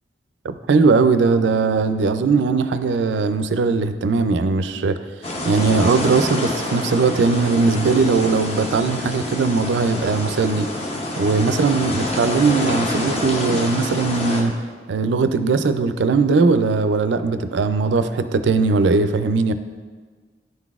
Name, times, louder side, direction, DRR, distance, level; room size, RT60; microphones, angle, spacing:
voice 1, 0.4-5.0 5.4-10.7 11.2-14.6 14.9-19.5, right 4 dB, 90° right, 11 dB, 0.4 m, -19 dB
sound 1, 5.2-14.4, left 1 dB, 35° left, 0.7 m, -27 dB
10.5 x 3.9 x 2.4 m, 1.5 s
head